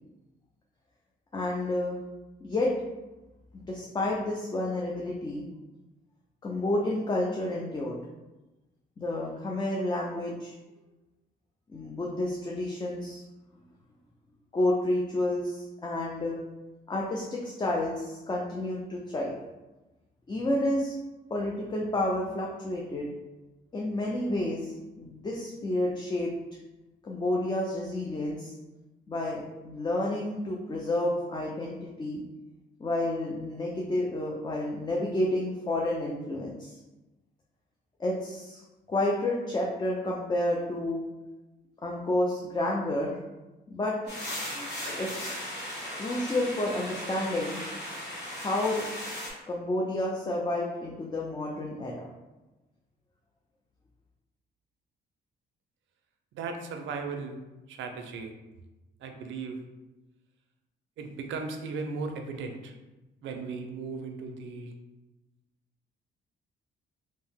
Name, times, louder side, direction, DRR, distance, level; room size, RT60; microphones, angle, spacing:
voice 1, 1.3-2.0 2.4-2.7 3.5-5.5 6.4-8.0 9.0-10.5 11.7-13.2 14.5-16.4 16.9-19.4 20.3-20.9 21.3-23.1 23.7-26.3 27.0-28.5 29.1-32.2 32.8-36.7 38.0-38.6 38.9-41.0 41.8-43.2 43.7-43.9 45.0-45.3 46.0-47.6 48.4-48.8 49.5-52.1, left 1 dB, 20° left, -2 dB, 0.4 m, -30 dB
sound 1, 44.1-49.3, left 1 dB, 60° left, 1.1 m, -37 dB
voice 2, 56.3-57.4 57.7-58.3 59.0-59.6 61.0-62.7 63.2-64.7, right 4 dB, 75° right, 5 dB, 0.4 m, -36 dB
2.7 x 2.0 x 3.4 m, 1.1 s
cardioid pair, 90°, 20 cm